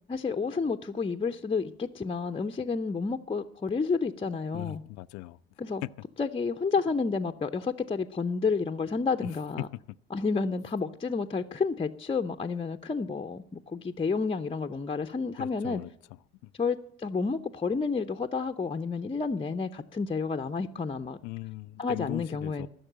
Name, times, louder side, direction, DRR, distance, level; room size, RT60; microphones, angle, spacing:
voice 1, 0.1-4.8 5.6-5.8 6.2-9.7 10.1-15.8 16.6-21.2 21.8-22.7, left 4 dB, 15° left, 0.6 m, -30 dB
voice 2, 4.5-5.4 9.2-9.4 9.7-9.8 15.4-15.9 16.4-16.5 21.2-22.7, left 18 dB, 60° left, 0.5 m, -39 dB
14.5 x 6.6 x 9.0 m
figure-of-eight pair, 50°, 32 cm